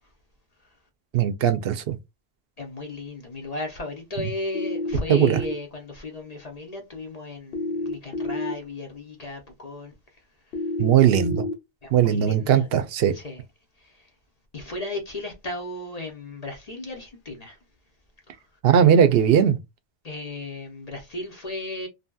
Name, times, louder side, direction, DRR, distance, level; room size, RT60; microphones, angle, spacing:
voice 1, 1.1-2.0 4.2-4.3 5.1-5.4 10.8-11.4 11.9-13.1 18.6-19.6, right 9 dB, 70° right, 0.8 m, -19 dB
voice 2, 2.6-9.9 11.8-12.7 13.1-13.4 13.8-13.9 14.5-17.6 20.0-21.9, left 2 dB, 45° left, 0.7 m, -35 dB
sound 1, 4.5-5.5 7.5-8.5 10.5-11.5, left 2 dB, 80° left, 1.0 m, -29 dB
2.7 x 2.7 x 2.2 m
omnidirectional pair, 1.0 m